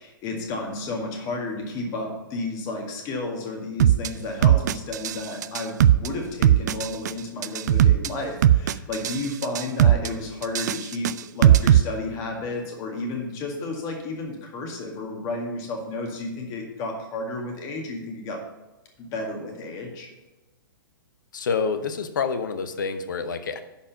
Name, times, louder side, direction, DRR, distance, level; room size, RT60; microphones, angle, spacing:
voice 1, 0.0-18.4 19.0-20.1, left 2 dB, 30° left, 2 dB, 1.9 m, -32 dB
sound 1, 3.8-4.1 4.4-5.2 5.4-6.1 6.4-7.1 7.4-8.1 8.4-9.2 9.4-10.1 10.4-11.8, right 11 dB, 55° right, 0.4 m, -17 dB
voice 2, 21.3-23.6, left 5 dB, 60° left, 10 dB, 0.9 m, -27 dB
11.0 x 4.4 x 5.6 m, 1.1 s
figure-of-eight pair, 115°, 12 cm